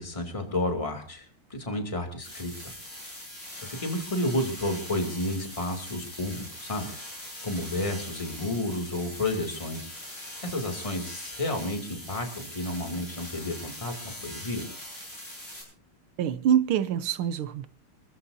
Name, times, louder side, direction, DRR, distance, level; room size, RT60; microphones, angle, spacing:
voice 1, 0.0-2.8 3.6-6.9 7.4-9.9 10.4-14.7, left 1 dB, 15° left, 2.5 m, -31 dB
sound 1, 2.2-15.6, left 1 dB, 60° left, 8.8 m, -42 dB
voice 2, 16.2-17.7, right 9 dB, 85° right, 1.7 m, -25 dB
28.0 x 14.0 x 2.7 m
omnidirectional pair, 2.3 m